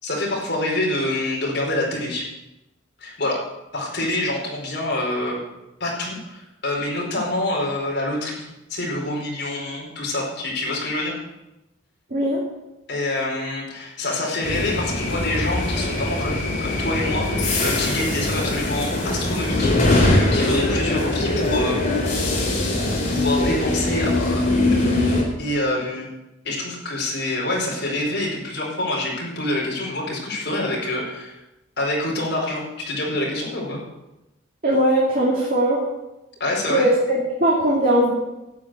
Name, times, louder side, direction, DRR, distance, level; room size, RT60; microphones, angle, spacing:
voice 1, 0.0-2.2 3.0-5.4 5.8-11.2 12.9-22.0 22.9-24.4 24.7-24.9 25.4-26.1 26.4-31.4 31.8-33.8 36.4-36.9, left 1 dB, 55° left, -2 dB, 4.9 m, -26 dB
voice 2, 12.1-12.4 34.6-35.8 36.7-38.1, right 1 dB, 45° right, -4 dB, 2.7 m, -19 dB
sound 1, 14.4-25.2, left 2 dB, 35° left, 3.9 m, -22 dB
12.0 x 9.4 x 7.8 m, 0.96 s
head